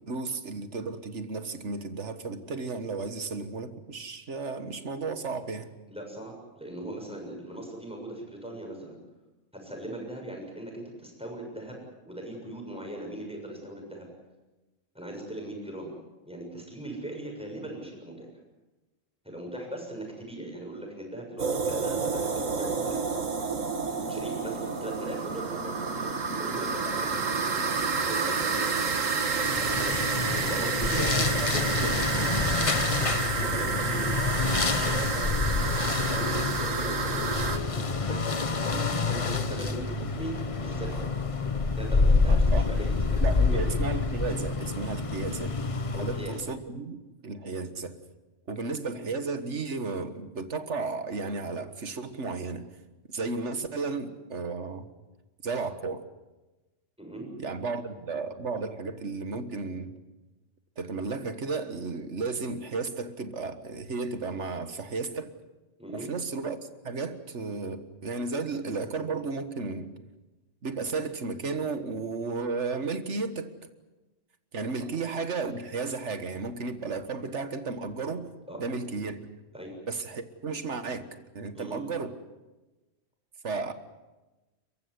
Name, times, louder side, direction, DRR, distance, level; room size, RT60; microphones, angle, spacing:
voice 1, 0.1-5.7 30.6-32.6 42.3-42.7 43.2-45.6 46.0-48.0 48.5-52.7 53.1-54.9 55.4-56.0 57.4-59.9 60.8-65.3 65.9-66.6 66.8-69.9 70.6-73.5 74.5-78.3 78.6-79.2 79.9-82.2 83.4-83.7, right 4 dB, 65° right, 10 dB, 1.8 m, -34 dB
voice 2, 5.9-9.0 9.5-11.8 12.1-14.1 14.9-15.9 16.3-18.3 19.2-23.0 23.8-27.7 27.9-28.7 29.6-29.9 30.4-32.1 32.9-35.7 36.1-40.3 40.6-41.0 41.7-43.6 45.9-46.3 57.0-57.3 65.8-66.1 78.5-78.7 79.5-79.8 81.5-81.8, right 1 dB, 5° right, 1 dB, 6.9 m, -39 dB
sound 1, 21.4-37.6, right 5 dB, 80° right, 2.0 m, -29 dB
sound 2, 29.4-46.5, left 4 dB, 30° left, 0.8 m, -27 dB
30.0 x 15.0 x 9.6 m, 1.1 s
omnidirectional pair, 1.3 m